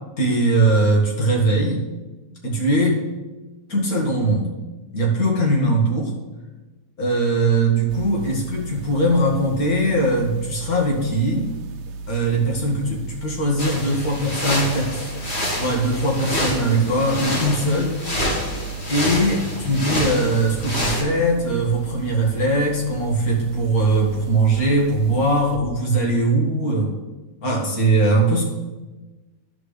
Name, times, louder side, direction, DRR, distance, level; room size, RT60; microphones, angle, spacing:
voice 1, 0.2-1.8 2.4-3.0 3.7-4.6 4.9-6.1 7.0-11.5 12.1-15.2 15.6-18.0 18.9-26.9 27.4-28.4, right 1 dB, 65° left, -2 dB, 2.3 m, -20 dB
sound 1, 7.9-25.6, right 4 dB, 85° right, 1.2 m, -35 dB
sound 2, 13.6-21.0, left 1 dB, 40° left, 2.2 m, -27 dB
13.0 x 4.9 x 3.3 m, 1.2 s
omnidirectional pair, 1.7 m